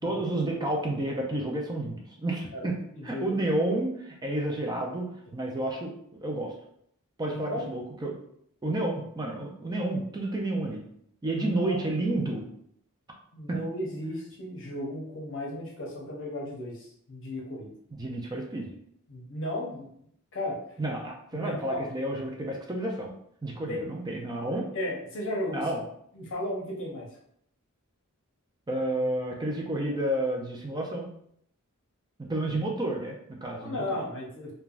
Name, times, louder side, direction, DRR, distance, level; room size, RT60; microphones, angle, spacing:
voice 1, 0.0-2.8 3.0-5.1 5.3-5.9 6.2-6.5 7.2-8.2 8.6-10.8 11.2-12.4 13.5-13.6 18.0-18.7 20.8-23.1 23.4-24.7 25.5-25.8 28.7-31.1 32.2-34.0, right 1 dB, 20° right, 0 dB, 0.4 m, -30 dB
voice 2, 2.9-3.4 7.3-7.7 11.3-11.9 13.3-17.7 19.1-19.9 20.3-20.6 21.3-21.8 23.7-23.8 24.7-25.6 26.1-27.1 33.6-34.5, left 1 dB, 60° left, -1 dB, 0.8 m, -35 dB
3.3 x 2.2 x 2.4 m, 0.68 s
head